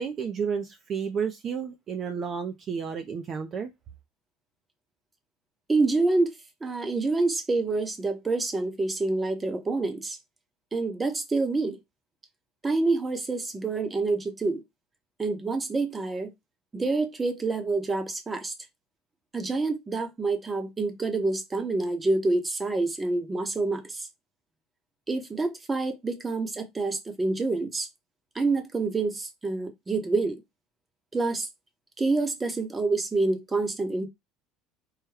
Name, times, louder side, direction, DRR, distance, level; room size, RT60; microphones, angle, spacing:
voice 1, 0.0-3.7, right 6 dB, 35° right, 0.5 m, -31 dB
voice 2, 5.7-6.3 6.6-10.2 10.7-11.8 12.6-14.6 15.2-16.3 16.7-18.5 19.3-24.1 25.1-27.9 28.3-30.4 31.1-31.5 32.0-34.1, right 3 dB, 15° right, 0.9 m, -27 dB
4.8 x 2.2 x 4.7 m
cardioid pair, 145°, 0 cm